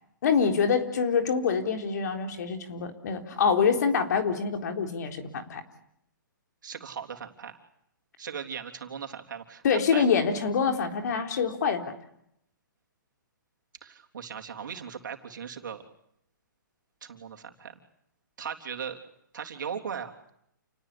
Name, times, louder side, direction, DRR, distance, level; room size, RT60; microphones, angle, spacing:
voice 1, 0.2-5.6 9.6-11.9, left 6 dB, 60° left, 5 dB, 4.0 m, -25 dB
voice 2, 6.6-7.6 8.2-10.1 13.8-15.8 17.0-17.8 18.4-19.0 19.3-20.3, right 7 dB, 70° right, 3 dB, 3.6 m, -38 dB
29.0 x 19.0 x 8.6 m, 0.75 s
hypercardioid pair, 135°, 11 cm